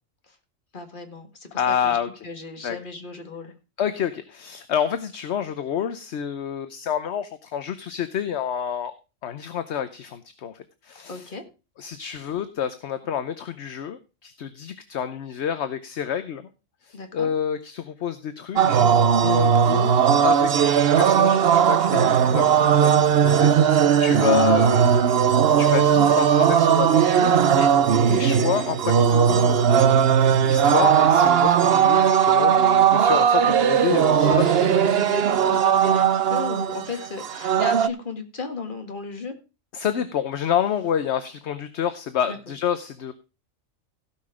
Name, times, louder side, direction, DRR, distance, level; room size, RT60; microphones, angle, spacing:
voice 1, 0.7-2.0 2.2-3.5 11.1-11.4 16.9-17.3 23.9-24.2 34.1-39.4 42.2-42.4, left 3 dB, 40° left, 5 dB, 2.0 m, -35 dB
voice 2, 1.5-2.1 2.6-2.8 3.8-8.9 9.2-11.3 11.8-16.5 16.8-18.9 19.2-22.5 22.7-22.9 23.2-27.7 28.1-34.5 36.9-37.0 39.7-43.1, left 9 dB, 60° left, 11 dB, 1.0 m, -28 dB
sound 1, 18.6-37.9, right 8 dB, 55° right, 0.8 m, -18 dB
16.5 x 5.8 x 5.0 m, 0.31 s
omnidirectional pair, 1.4 m